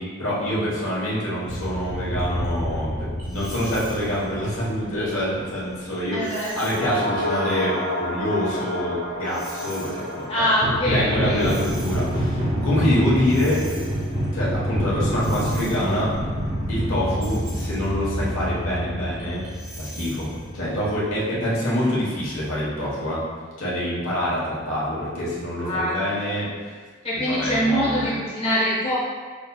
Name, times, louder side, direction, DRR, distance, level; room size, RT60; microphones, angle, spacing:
voice 1, 0.0-6.2 6.5-10.4 10.9-13.6 14.3-16.1 16.7-19.4 19.8-20.3 20.5-23.2 23.6-26.5 27.1-28.0, equal, 80° left, -6 dB, 1.2 m, -26 dB
sound 1, 1.4-5.7 6.2-6.8 7.2-7.6 8.0-9.9 10.4-21.2, equal, 45° right, 1.3 m, -28 dB
voice 2, 6.1-6.5 10.3-11.4 25.6-25.9 27.0-28.9, equal, 30° left, -9 dB, 1.0 m, -23 dB
sound 2, 6.7-15.1 15.4-15.5, left 1 dB, 70° right, 0.6 m, -32 dB
5.7 x 2.7 x 2.3 m, 1.5 s
head